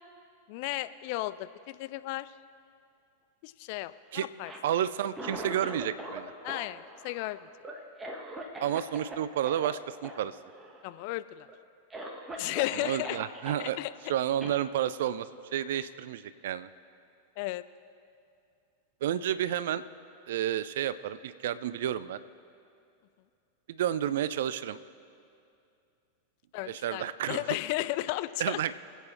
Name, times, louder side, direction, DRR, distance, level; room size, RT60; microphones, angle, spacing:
voice 1, 0.5-2.3 3.4-4.5 6.4-7.5 10.8-11.5 12.4-13.2 13.6-13.9 17.4-17.6 26.5-28.6, left 17 dB, 45° left, 14 dB, 0.4 m, -34 dB
Cough, 4.3-6.2 6.5-9.2 9.5-9.7 10.0-10.2 10.5-11.0 11.5-11.6 11.9-13.6 14.4-14.6, right 1 dB, 15° right, 1.3 m, -41 dB
voice 2, 4.6-6.3 8.6-10.4 12.8-13.8 14.1-16.7 19.0-19.8 20.3-22.2 23.7-24.8 26.7-27.4 28.4-28.7, right 11 dB, 55° right, 16 dB, 0.4 m, -31 dB
24.5 x 8.2 x 3.2 m, 2.5 s
figure-of-eight pair, 90°, 0 cm